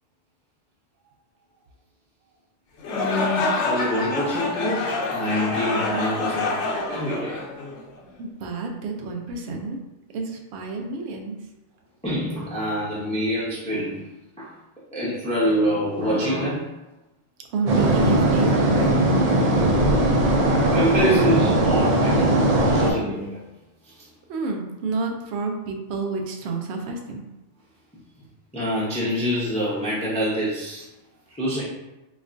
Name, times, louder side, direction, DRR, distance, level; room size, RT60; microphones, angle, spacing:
sound 1, 2.8-8.0, left 3 dB, 65° left, 0.8 m, -27 dB
voice 1, 2.9-6.5 6.9-7.4 12.0-14.1 14.4-14.5 14.9-16.7 20.6-22.3 22.6-23.4 23.8-24.1 28.5-30.9 31.4-31.6, equal, 10° left, -8 dB, 0.4 m, -26 dB
voice 2, 8.2-9.8 10.1-11.4 17.5-18.9 24.3-27.2, right 4 dB, 65° right, 2 dB, 0.8 m, -29 dB
sound 2, 17.7-22.9, right 1 dB, 80° right, 0.3 m, -19 dB
4.2 x 2.3 x 2.5 m, 1.0 s
omnidirectional pair, 1.4 m